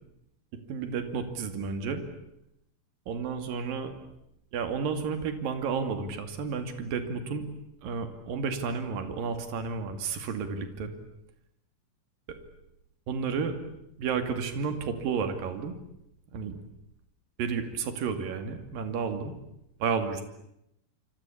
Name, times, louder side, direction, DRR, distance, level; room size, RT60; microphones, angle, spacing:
voice 1, 0.7-2.0 3.1-3.9 4.5-7.5 7.8-10.9 13.1-13.6 14.0-15.8 16.3-16.6 17.4-19.3 19.8-20.2, right 5 dB, 50° right, 8 dB, 3.6 m, -31 dB
28.0 x 24.5 x 8.5 m, 0.83 s
omnidirectional pair, 5.9 m